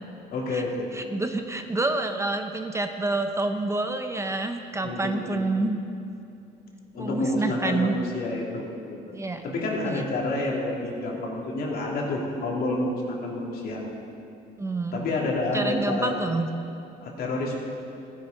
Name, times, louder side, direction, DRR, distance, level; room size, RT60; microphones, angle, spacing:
voice 1, 0.3-0.9 4.8-5.4 6.9-9.0 9.4-13.8 14.9-16.2 17.0-17.6, left 2 dB, 65° left, -2 dB, 2.5 m, -29 dB
voice 2, 0.9-5.8 7.0-7.9 9.1-9.4 9.9-10.0 14.6-15.0 15.5-16.5, right 2 dB, 15° right, 6 dB, 0.7 m, -28 dB
15.5 x 10.5 x 3.9 m, 2.6 s
cardioid pair, 110°, 17 cm